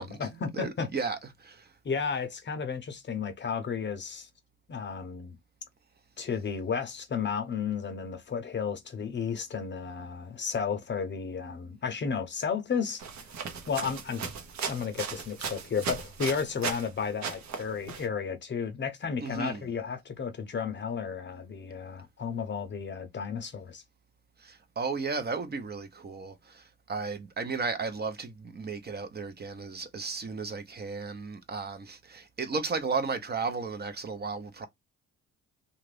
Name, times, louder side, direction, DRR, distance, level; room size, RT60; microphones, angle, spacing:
voice 1, 0.0-0.9 1.8-4.3 4.7-5.4 6.2-13.0 13.7-14.3 14.7-23.8, left 6 dB, 35° left, 0.6 m, -33 dB
voice 2, 0.5-1.7 19.2-19.7 24.4-34.7, right 4 dB, 35° right, 0.6 m, -34 dB
sound 1, 13.0-16.9 17.2-18.0, right 6 dB, 65° right, 0.9 m, -37 dB
2.5 x 2.4 x 3.3 m
cardioid pair, 90°, 30 cm